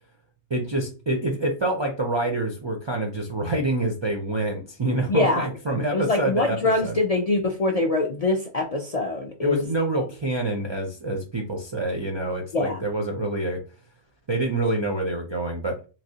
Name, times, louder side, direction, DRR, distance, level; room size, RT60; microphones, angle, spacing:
voice 1, 0.5-6.9 9.4-13.6 14.3-15.8, right 2 dB, 45° right, 0 dB, 0.3 m, -27 dB
voice 2, 5.1-5.5 5.9-9.6 12.5-12.8, left 2 dB, 55° left, 1 dB, 0.4 m, -24 dB
3.3 x 2.9 x 2.7 m, 0.35 s
omnidirectional pair, 1.2 m